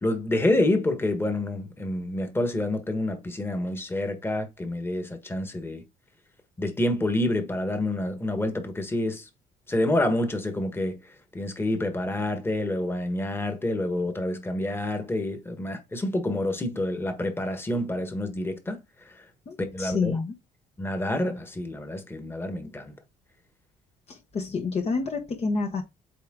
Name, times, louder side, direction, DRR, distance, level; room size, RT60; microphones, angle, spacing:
voice 1, 0.0-5.8 6.6-9.2 9.7-11.0 11.3-18.8 19.7-20.1 20.8-22.9, left 1 dB, 15° left, 1.4 m, -28 dB
voice 2, 19.5-20.3 24.1-25.8, left 4 dB, 40° left, 1.0 m, -28 dB
8.4 x 3.4 x 3.8 m
cardioid pair, 110°, 17 cm